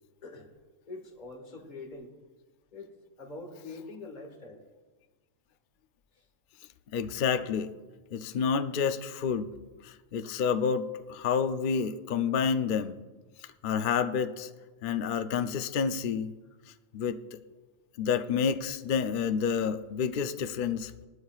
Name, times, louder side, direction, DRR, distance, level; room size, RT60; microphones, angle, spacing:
voice 1, 0.9-2.1 2.7-2.9 3.2-4.6 6.1-6.3, left 3 dB, 35° left, 1 dB, 1.7 m, -44 dB
voice 2, 6.9-7.7 8.1-9.5 9.8-13.0 13.6-14.5 14.8-16.3 16.9-17.4 18.0-20.9, left 6 dB, 55° left, 9 dB, 0.6 m, -29 dB
20.0 x 12.5 x 2.4 m, 1.3 s
omnidirectional pair, 1.4 m